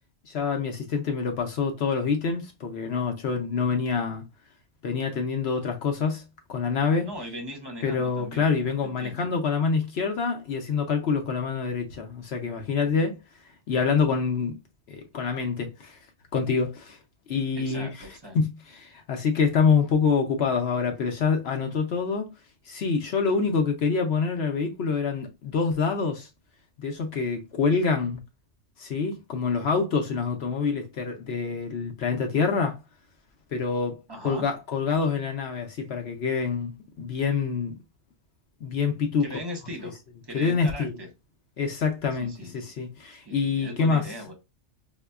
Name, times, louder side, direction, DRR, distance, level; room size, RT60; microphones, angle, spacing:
voice 1, 0.2-4.2 4.8-6.2 6.5-7.1 7.8-13.2 13.7-14.5 14.9-16.0 16.3-17.0 17.3-18.1 18.3-22.3 22.7-26.3 26.8-28.2 28.8-32.8 33.5-36.7 37.0-37.8 38.6-39.3 40.3-40.9 41.6-44.1, left 5 dB, 65° left, 0.8 m, -26 dB
voice 2, 7.0-9.3 17.6-18.4 34.1-34.4 39.2-40.0 40.2-41.1 42.2-42.5 43.3-44.3, equal, 25° right, 0.8 m, -39 dB
5.3 x 2.2 x 2.3 m
omnidirectional pair, 1.3 m